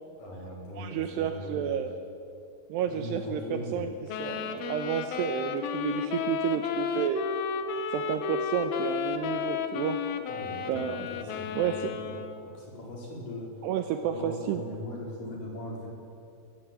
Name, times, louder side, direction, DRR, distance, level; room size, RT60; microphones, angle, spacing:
voice 1, 0.2-1.9 2.9-3.8 10.3-13.5 14.0-15.9, left 1 dB, 40° left, -3 dB, 5.9 m, -40 dB
voice 2, 0.8-2.0 2.7-3.9 4.2-7.2 7.9-10.0 10.7-11.1 11.6-12.0 13.6-14.6, right 9 dB, 90° right, 7 dB, 2.4 m, -31 dB
sound 1, 4.1-12.5, left 7 dB, 70° left, 2.3 m, -33 dB
21.0 x 15.5 x 9.0 m, 2.5 s
omnidirectional pair, 5.9 m